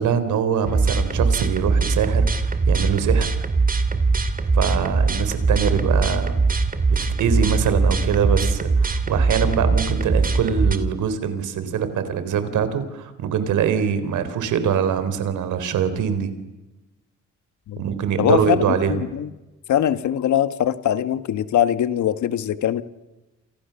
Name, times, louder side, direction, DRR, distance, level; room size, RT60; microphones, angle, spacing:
voice 1, 0.0-3.3 4.5-6.3 6.9-16.3 17.8-19.0, right 7 dB, 80° right, 11 dB, 4.0 m, -23 dB
sound 1, 0.6-10.8, right 4 dB, 30° right, 2.7 m, -21 dB
voice 2, 18.2-19.3 19.7-22.8, left 10 dB, 70° left, 12 dB, 1.6 m, -22 dB
29.0 x 28.5 x 7.1 m, 1.1 s
cardioid pair, 90°, 30 cm